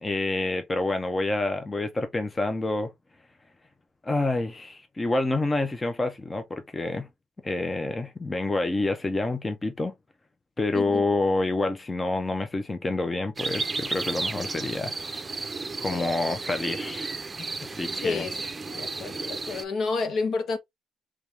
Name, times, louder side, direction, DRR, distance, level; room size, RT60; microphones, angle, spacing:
voice 1, 0.0-2.9 4.0-7.1 7.4-9.9 10.6-14.9 15.8-17.1 17.6-18.2, left 2 dB, 20° left, 0.8 m, -28 dB
sound 1, 13.4-19.6, right 3 dB, 25° right, 0.7 m, -33 dB
voice 2, 18.0-20.6, left 4 dB, 65° left, 1.1 m, -30 dB
3.5 x 3.1 x 3.3 m
cardioid pair, 90°, 0 cm